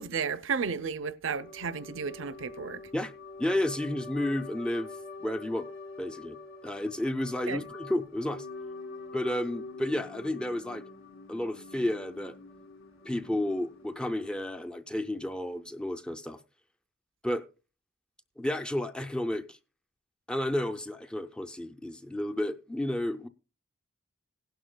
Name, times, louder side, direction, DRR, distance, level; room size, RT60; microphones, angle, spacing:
voice 1, 0.0-2.8 7.5-7.6, right 5 dB, 65° right, 0.6 m, -33 dB
sound 1, 1.4-14.4, left 3 dB, 75° left, 1.8 m, -45 dB
voice 2, 3.4-4.9 5.2-5.7 6.0-6.4 6.6-8.5 9.1-10.8 11.3-12.4 13.0-16.4 17.2-17.4 18.4-19.6 20.3-23.3, left 1 dB, 5° left, 0.4 m, -31 dB
16.5 x 11.5 x 2.2 m
head